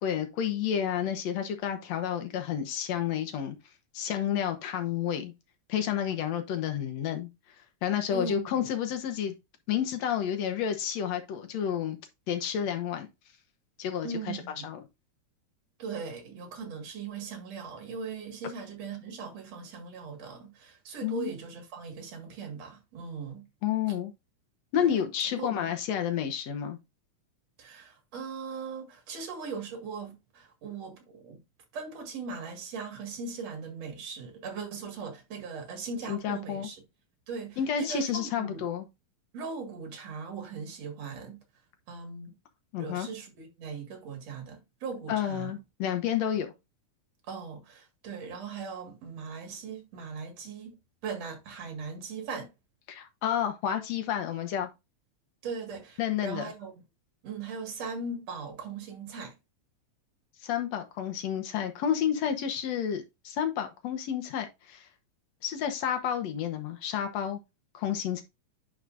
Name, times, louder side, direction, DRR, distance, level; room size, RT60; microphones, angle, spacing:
voice 1, 0.0-3.6 3.9-5.3 5.7-7.3 7.8-9.3 9.7-12.0 12.3-13.1 13.8-14.4 14.6-14.8 21.0-21.3 23.6-24.1 24.7-26.8 36.1-36.7 37.6-38.9 42.7-43.1 45.1-46.5 52.9-54.7 56.0-56.4 60.4-64.9 65.4-67.4 67.7-68.2, left 9 dB, 65° left, 2.1 m, -30 dB
voice 2, 8.1-8.7 14.0-14.7 15.8-23.5 24.8-25.0 25.3-25.7 27.6-31.4 31.7-36.8 37.3-38.6 39.3-41.4 41.9-42.3 42.8-45.6 47.2-50.8 51.0-52.5 55.4-56.7 57.2-59.3, right 5 dB, 60° right, 2.9 m, -39 dB
10.0 x 5.0 x 2.5 m
omnidirectional pair, 3.5 m